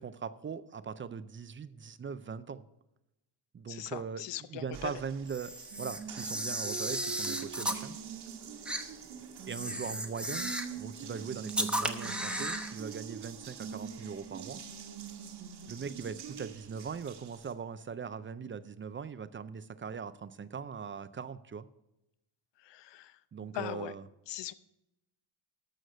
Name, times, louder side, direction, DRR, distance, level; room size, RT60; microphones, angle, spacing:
voice 1, 0.0-2.7 3.5-4.2 4.5-8.0 9.5-10.5 10.8-14.6 15.7-21.6 23.3-24.0, right 6 dB, 25° right, 14 dB, 0.4 m, -40 dB
voice 2, 3.7-4.9 22.6-23.2 23.5-23.9 24.3-24.5, left 12 dB, 60° left, 15 dB, 0.7 m, -40 dB
Water tap faucet, 4.7-17.5, right 7 dB, 50° right, 1.5 m, -44 dB
Camera, 5.3-7.8 8.7-8.8 9.5-10.8 11.5-12.7, right 1 dB, ahead, 0.8 m, -35 dB
13.0 x 6.4 x 5.4 m, 0.89 s
cardioid pair, 155°, 48 cm